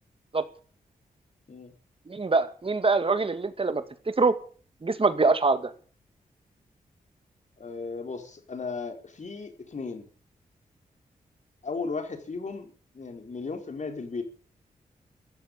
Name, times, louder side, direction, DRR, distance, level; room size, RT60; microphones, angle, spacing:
voice 1, 2.1-3.8 4.2-4.3 4.8-5.7, right 3 dB, 35° right, 11 dB, 2.2 m, -24 dB
voice 2, 7.6-10.1 11.6-14.2, left 4 dB, 55° left, 5 dB, 4.4 m, -36 dB
14.5 x 7.8 x 9.8 m, 0.43 s
cardioid pair, 50°, 15 cm